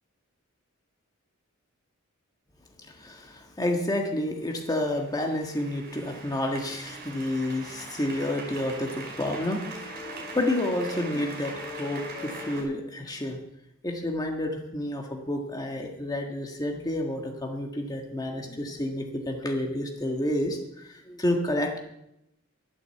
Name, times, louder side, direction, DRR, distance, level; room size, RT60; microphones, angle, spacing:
voice 1, 2.8-13.4 13.8-21.8, left 1 dB, 20° left, 2 dB, 1.6 m, -30 dB
sound 1, 4.5-12.6, right 1 dB, 50° right, 5.1 m, -40 dB
12.0 x 9.3 x 7.8 m, 0.84 s
head